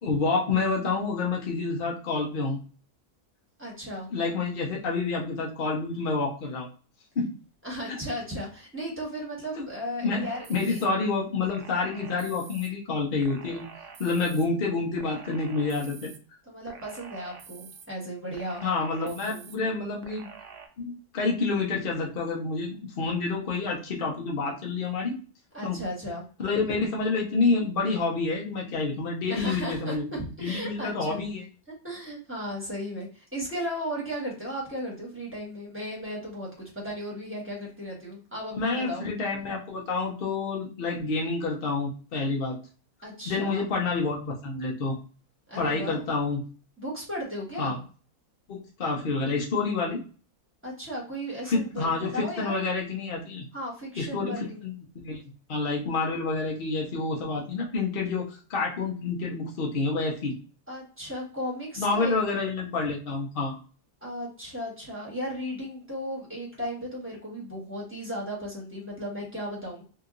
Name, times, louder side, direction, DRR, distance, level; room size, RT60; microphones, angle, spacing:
voice 1, 0.0-2.6 4.1-6.7 7.2-7.3 7.9-8.0 9.6-9.7 10.0-13.7 14.0-16.1 18.6-20.3 20.8-25.2 25.6-25.8 26.4-30.1 30.4-31.4 38.6-42.6 43.3-44.9 45.6-46.4 47.6-47.8 48.5-50.0 51.5-53.5 54.0-60.4 61.8-63.5, left 3 dB, 50° left, -1 dB, 0.6 m, -28 dB
voice 2, 3.6-4.1 7.6-10.8 16.5-18.6 19.0-19.4 25.5-26.2 29.3-31.2 31.8-39.1 43.0-43.6 45.5-46.0 46.8-47.8 50.6-52.7 53.5-54.6 60.7-62.2 64.0-69.9, equal, 10° right, -4 dB, 1.2 m, -35 dB
sound 1, 10.2-10.9 11.5-12.7 13.2-14.5 15.0-16.2 16.7-17.9 18.3-19.6 20.0-20.7, right 6 dB, 75° right, 1.1 m, -47 dB
2.9 x 2.7 x 2.4 m, 0.38 s
omnidirectional pair, 1.7 m